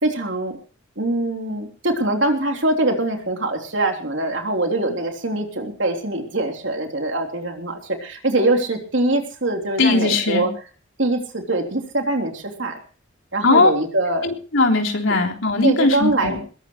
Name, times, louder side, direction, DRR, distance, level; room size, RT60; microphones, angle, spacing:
voice 1, 0.0-0.6 1.0-10.5 11.0-12.8 13.3-14.3 15.6-16.5, right 2 dB, 60° right, 3 dB, 3.5 m, -23 dB
voice 2, 9.8-10.5 13.4-13.7 14.2-16.4, left 3 dB, 70° left, 2 dB, 3.6 m, -19 dB
21.5 x 17.0 x 3.1 m, 0.40 s
head